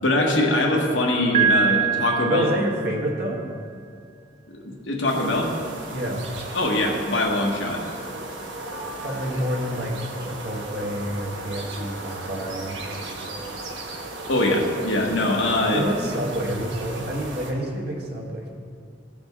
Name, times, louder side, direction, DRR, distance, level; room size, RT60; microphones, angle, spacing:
voice 1, 0.0-2.5 4.5-5.5 6.5-7.8 14.3-15.8, left 1 dB, 85° left, 0 dB, 1.3 m, -22 dB
Piano, 1.3-3.3, right 7 dB, 35° right, 0.3 m, -23 dB
voice 2, 2.3-3.4 5.9-6.3 9.0-12.8 15.7-18.5, equal, 60° right, -1 dB, 1.5 m, -28 dB
sound 1, 5.1-17.5, right 2 dB, 80° right, 1.2 m, -36 dB
15.0 x 5.0 x 3.6 m, 2.2 s
head